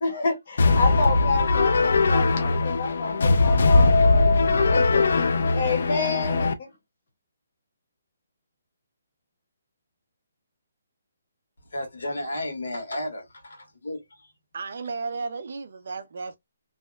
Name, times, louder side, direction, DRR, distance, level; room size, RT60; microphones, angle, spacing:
voice 1, 0.0-6.7, left 4 dB, 35° left, 0.8 m, -29 dB
sound 1, 0.6-6.5, left 3 dB, 55° left, 0.3 m, -20 dB
voice 2, 11.7-14.3, left 1 dB, 75° left, 1.2 m, -33 dB
voice 3, 14.5-16.4, right 4 dB, 45° right, 0.3 m, -33 dB
2.7 x 2.1 x 2.2 m
hypercardioid pair, 180°, 0 cm